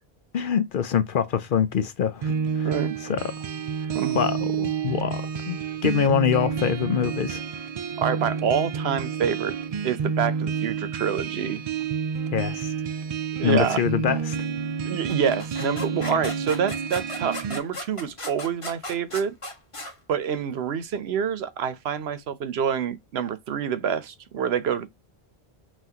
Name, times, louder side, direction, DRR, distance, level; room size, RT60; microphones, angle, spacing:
voice 1, 0.3-3.3 4.1-5.6 5.8-7.4 12.3-12.7 13.4-14.4, left 8 dB, 60° left, 0.7 m, -25 dB
sound 1, 2.2-17.6, right 6 dB, 55° right, 0.4 m, -29 dB
voice 2, 2.6-3.0 3.9-4.2 8.0-9.6 9.8-11.6 13.4-13.8 14.8-19.3 20.1-24.9, right 7 dB, 75° right, 0.9 m, -27 dB
sound 2, 15.1-19.9, left 1 dB, 30° left, 1.2 m, -36 dB
5.8 x 2.6 x 2.8 m
omnidirectional pair, 1.1 m